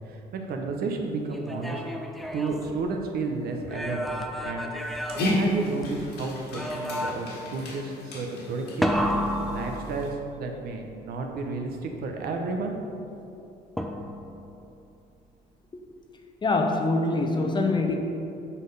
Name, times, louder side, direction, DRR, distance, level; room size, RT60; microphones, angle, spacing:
voice 1, 0.1-1.8 2.3-4.1 4.4-4.7 5.2-8.9 9.5-12.7, right 3 dB, 65° right, 3 dB, 0.9 m, -32 dB
sound 1, 1.3-3.2 3.6-6.1 6.5-7.5 8.8-10.4 13.8-14.4, equal, ahead, 0.5 m, -31 dB
Dog, 4.8-10.1, left 1 dB, 75° left, 1.7 m, -32 dB
voice 2, 16.4-17.9, left 2 dB, 25° left, 3 dB, 0.7 m, -24 dB
7.3 x 4.2 x 5.4 m, 2.8 s
cardioid pair, 110°, 17 cm